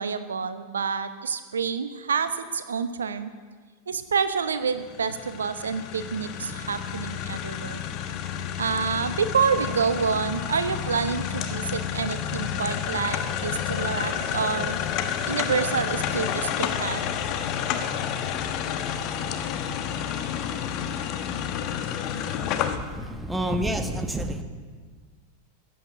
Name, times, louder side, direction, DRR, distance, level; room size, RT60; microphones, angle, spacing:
voice 1, 0.0-3.3 3.9-7.8 8.6-14.8 15.3-17.1, right 6 dB, 70° right, 11 dB, 0.9 m, -28 dB
sound 1, 4.8-22.8, left 9 dB, 40° left, 1.2 m, -30 dB
voice 2, 22.8-24.4, right 1 dB, 5° right, 6 dB, 1.3 m, -28 dB
14.5 x 9.3 x 9.7 m, 1.5 s
figure-of-eight pair, 90°, 0 cm